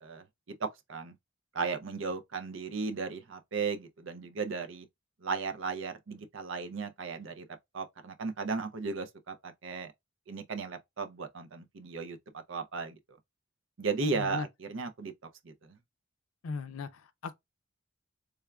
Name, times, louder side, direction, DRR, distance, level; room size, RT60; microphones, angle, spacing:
voice 1, 0.0-1.1 1.5-4.9 5.2-7.5 7.7-9.9 10.3-13.0 13.8-15.1 15.4-15.8, right 4 dB, 65° right, 0.6 m, -36 dB
voice 2, 14.0-14.5 16.4-17.3, left 4 dB, 90° left, 0.4 m, -38 dB
3.4 x 3.3 x 2.3 m
head